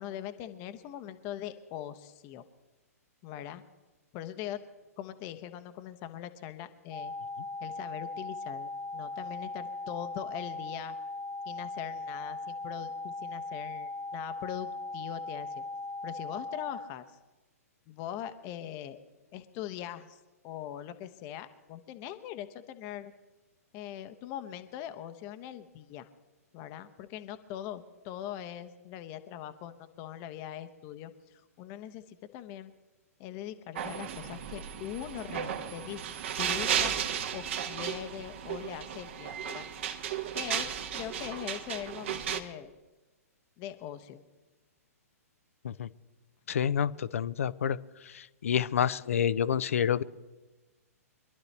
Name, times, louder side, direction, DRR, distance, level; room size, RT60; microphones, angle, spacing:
voice 1, 0.0-2.4 3.2-3.6 4.1-4.6 5.0-7.1 7.6-11.0 11.5-15.6 16.0-17.2 17.9-19.0 19.3-20.2 20.4-23.1 23.7-26.1 26.5-32.7 33.2-36.9 37.3-39.7 40.3-42.7 43.6-44.2, left 11 dB, 30° left, 10 dB, 0.9 m, -41 dB
sound 1, 6.9-16.9, left 2 dB, 5° left, 0.9 m, -39 dB
sound 2, 33.8-42.4, right 8 dB, 50° right, 1.4 m, -34 dB
voice 2, 46.5-47.8 48.4-50.0, left 8 dB, 60° left, 17 dB, 0.6 m, -28 dB
24.5 x 11.5 x 3.3 m, 1.1 s
figure-of-eight pair, 115°, 8 cm